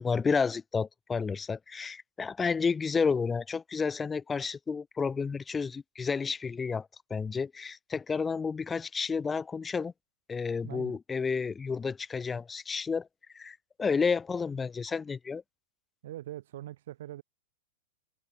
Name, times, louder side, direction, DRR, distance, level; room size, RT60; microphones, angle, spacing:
voice 1, 0.0-9.9 10.3-13.1 13.3-15.4, left 5 dB, 15° left, 1.0 m, -31 dB
voice 2, 10.6-11.0 16.0-17.2, right 13 dB, 65° right, 4.0 m, -42 dB
hypercardioid pair, 145°, 0 cm